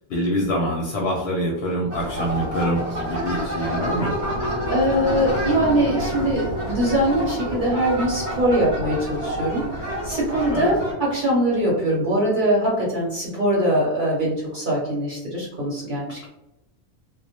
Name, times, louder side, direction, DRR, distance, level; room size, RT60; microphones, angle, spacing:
voice 1, 0.1-4.1 10.5-10.7, equal, 70° left, -1 dB, 0.7 m, -25 dB
sound 1, 1.9-10.9, equal, 80° right, 1.2 m, -29 dB
sound 2, 2.9-12.7, equal, 20° left, 0.4 m, -33 dB
voice 2, 4.7-16.3, right 1 dB, 50° right, -6 dB, 0.9 m, -22 dB
2.2 x 2.0 x 2.7 m, 0.90 s
omnidirectional pair, 1.2 m